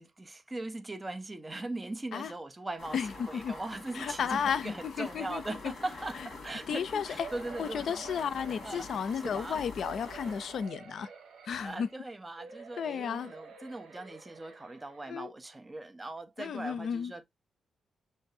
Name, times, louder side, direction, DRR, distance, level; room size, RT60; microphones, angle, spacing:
voice 1, 0.0-3.0 3.3-8.2 8.6-8.9 9.2-9.6 11.6-17.2, right 2 dB, 15° right, 0.5 m, -40 dB
sound 1, 2.8-10.7, left 3 dB, 45° left, 2.0 m, -46 dB
voice 2, 2.9-3.6 3.9-5.4 6.7-7.3 7.6-11.1 11.4-11.9 12.8-13.3 15.1-15.3 16.4-17.1, left 7 dB, 60° left, 0.4 m, -33 dB
sound 2, 7.2-9.3 9.8-12.0 12.4-15.2 15.8-15.9 16.2-16.3, right 6 dB, 65° right, 1.5 m, -49 dB
5.7 x 3.3 x 2.6 m
cardioid pair, 145°, 0 cm